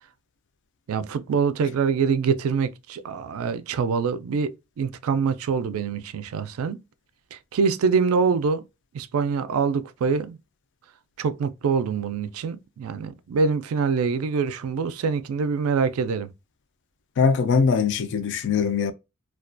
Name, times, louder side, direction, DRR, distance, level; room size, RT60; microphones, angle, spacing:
voice 1, 0.9-4.5 4.8-6.8 7.3-8.6 8.9-10.4 11.2-16.3, right 5 dB, 70° right, 0.3 m, -25 dB
voice 2, 17.2-18.9, left 5 dB, 55° left, 0.3 m, -21 dB
2.3 x 2.2 x 2.4 m
head